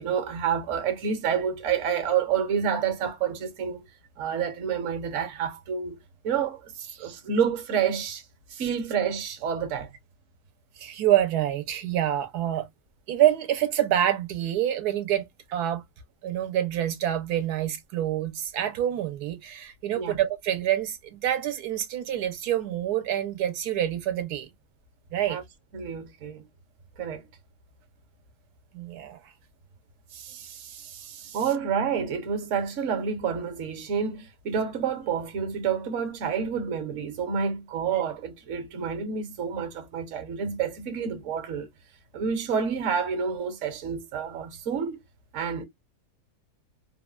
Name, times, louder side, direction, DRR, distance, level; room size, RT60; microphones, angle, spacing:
voice 1, 0.0-3.8 4.2-6.0 6.2-6.7 7.0-8.2 8.6-9.9 19.9-20.2 25.3-25.4 25.7-26.5 27.0-27.3 31.3-41.7 42.1-45.0 45.3-45.7, right 7 dB, 60° right, 1.1 m, -28 dB
voice 2, 10.8-12.7 13.1-15.8 16.2-24.5 25.1-25.4 28.7-29.3 30.1-31.4, right 11 dB, 85° right, 1.2 m, -27 dB
3.1 x 2.2 x 2.3 m
omnidirectional pair, 1.6 m